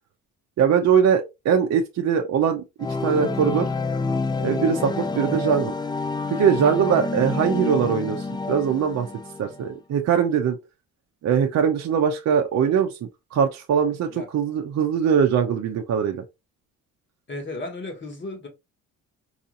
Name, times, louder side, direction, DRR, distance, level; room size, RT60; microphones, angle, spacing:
voice 1, 0.6-2.6 3.0-3.7 4.4-5.7 6.3-9.1 9.4-10.6 11.2-13.0 13.3-16.2, right 7 dB, 50° right, 0.6 m, -21 dB
sound 1, 2.8-9.7, left 3 dB, 15° left, 0.4 m, -28 dB
voice 2, 17.3-18.5, left 2 dB, 35° left, 1.7 m, -34 dB
4.9 x 2.6 x 2.5 m
cardioid pair, 85°, 33 cm